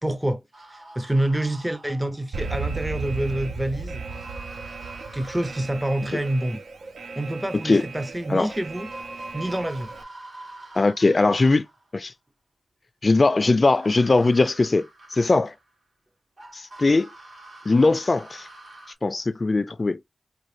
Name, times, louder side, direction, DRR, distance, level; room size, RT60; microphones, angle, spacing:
voice 1, 0.0-0.4 0.7-4.0 5.1-6.6 7.2-8.9 9.3-9.9, right 1 dB, 15° right, 0.5 m, -27 dB
sound 1, 0.5-2.4 4.0-7.0 8.3-8.4 8.7-11.9 13.6-15.8 16.4-18.9, right 1 dB, 70° right, 2.8 m, -45 dB
Alarm, 2.3-10.0, right 4 dB, 90° right, 0.5 m, -35 dB
voice 2, 10.8-11.6 11.9-12.1 13.0-14.9 15.1-15.5 16.5-17.1 17.7-18.5 19.0-20.0, left 3 dB, 45° left, 0.3 m, -20 dB
4.6 x 2.5 x 3.2 m
cardioid pair, 45°, 0 cm